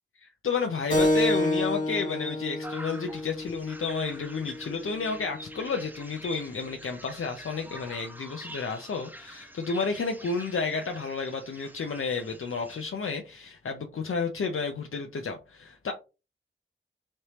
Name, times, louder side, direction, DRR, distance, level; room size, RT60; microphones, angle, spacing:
voice 1, 0.2-15.9, left 4 dB, 80° left, 0.5 m, -31 dB
Keyboard (musical), 0.9-6.0, left 1 dB, 40° left, 1.5 m, -30 dB
sound 1, 2.6-12.8, right 1 dB, 10° right, 0.9 m, -46 dB
4.2 x 3.3 x 2.9 m
cardioid pair, 40°, 21 cm